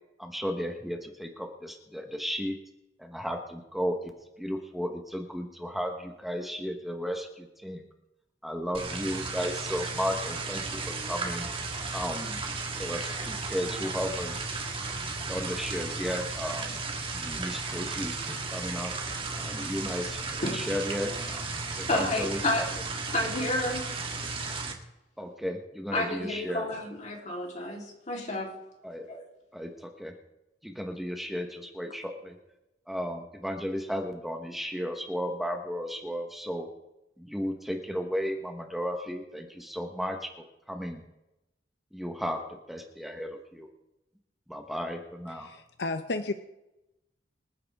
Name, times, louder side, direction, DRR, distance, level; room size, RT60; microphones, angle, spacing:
voice 1, 0.2-2.6 3.0-7.8 8.4-11.5 11.9-12.4 12.8-14.4 15.3-16.8 17.1-18.9 19.4-22.6 25.2-26.7 28.8-29.1 29.5-30.1 30.6-32.4 32.9-36.7 37.2-40.3 40.7-41.0 41.9-42.4 42.7-43.7 44.5-45.5, equal, ahead, 4 dB, 1.2 m, -34 dB
sound 1, 8.7-24.7, right 3 dB, 30° right, 1.8 m, -34 dB
voice 2, 21.9-22.8 23.1-23.9 25.9-28.5 29.1-29.2, left 1 dB, 45° left, -1 dB, 3.6 m, -30 dB
voice 3, 45.3-46.3, left 3 dB, 75° left, 9 dB, 0.7 m, -33 dB
26.0 x 9.5 x 3.6 m, 0.95 s
head